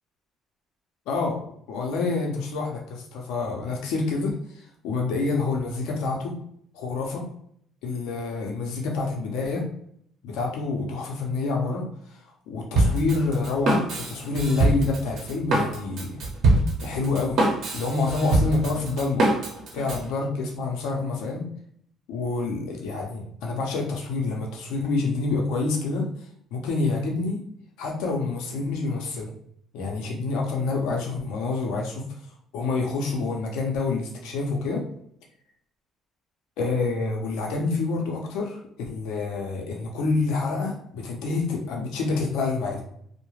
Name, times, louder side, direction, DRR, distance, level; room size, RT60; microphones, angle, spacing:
voice 1, 1.1-1.4 1.7-6.3 6.7-7.3 7.8-9.6 10.2-11.9 12.5-16.2 16.8-17.4 17.7-19.3 19.7-21.4 22.1-26.1 26.5-27.4 27.8-29.3 29.7-32.0 32.5-34.9 36.6-42.8, left 3 dB, 85° left, 0 dB, 0.6 m, -27 dB
Drum kit, 12.8-20.1, right 2 dB, 65° right, 0.7 m, -24 dB
2.3 x 2.1 x 3.1 m, 0.66 s
cardioid pair, 95°, 0 cm